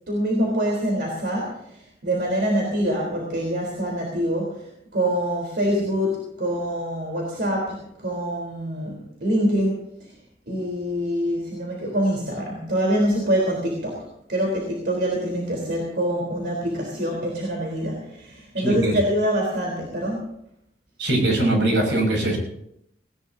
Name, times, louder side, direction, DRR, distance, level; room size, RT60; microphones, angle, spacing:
voice 1, 0.1-4.7 4.9-10.1 10.5-20.3, equal, 60° right, -1 dB, 3.8 m, -25 dB
voice 2, 18.6-19.0 21.0-22.4, right 1 dB, 80° right, 2 dB, 6.3 m, -21 dB
19.0 x 18.5 x 2.8 m, 0.74 s
head